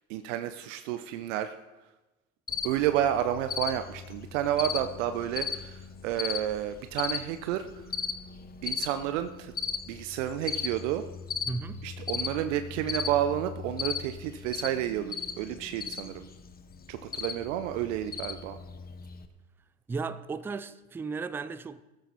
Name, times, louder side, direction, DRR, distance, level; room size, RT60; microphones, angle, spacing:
voice 1, 0.1-1.6 2.6-7.9 8.6-9.5 9.9-11.0 11.8-16.3 16.9-18.6, right 11 dB, 60° right, 0.9 m, -30 dB
Cricket, 2.5-19.3, left 7 dB, 20° left, 1.1 m, -37 dB
voice 2, 11.5-11.8 19.9-21.8, right 4 dB, 5° right, 0.3 m, -35 dB
15.5 x 13.5 x 4.2 m
hypercardioid pair, 85°, 42 cm